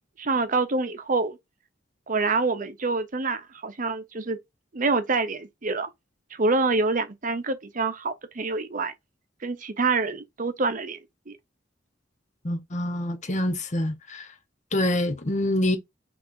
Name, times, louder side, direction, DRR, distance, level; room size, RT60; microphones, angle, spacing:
voice 1, 0.2-1.4 2.1-4.4 4.7-5.9 6.3-8.9 9.4-11.0 11.3-11.4, right 3 dB, 45° right, 0.8 m, -26 dB
voice 2, 12.4-14.3 14.7-15.8, left 1 dB, 40° left, 1.1 m, -26 dB
5.7 x 3.3 x 2.7 m
head